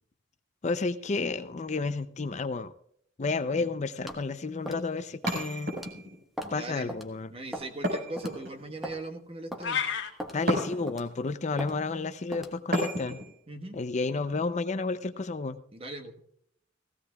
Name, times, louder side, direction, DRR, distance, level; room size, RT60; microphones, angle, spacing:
voice 1, 0.6-2.7 3.2-5.7 6.5-7.3 10.3-13.2 13.7-15.6, left 3 dB, 40° left, 12 dB, 0.5 m, -31 dB
sound 1, 4.1-4.3 4.7-4.9 5.2-5.4 5.8-5.9 6.4-6.6 6.9-7.1 7.5-7.8 8.2-8.3 8.8-9.0 9.5-9.7 10.2-10.4 10.9-11.1 11.6-11.7 12.3-12.6, equal, ahead, 1.3 m, -38 dB
sound 2, 5.3-6.2 7.8-8.8 10.5-11.1 12.7-13.3, equal, 60° right, 4.9 m, -32 dB
voice 2, 6.4-6.9 7.3-9.8 13.5-13.8 15.7-16.2, right 2 dB, 30° right, 5 dB, 1.3 m, -40 dB
sound 3, 9.6-10.1, left 7 dB, 70° left, 1.7 m, -29 dB
17.5 x 15.5 x 2.3 m, 0.69 s
head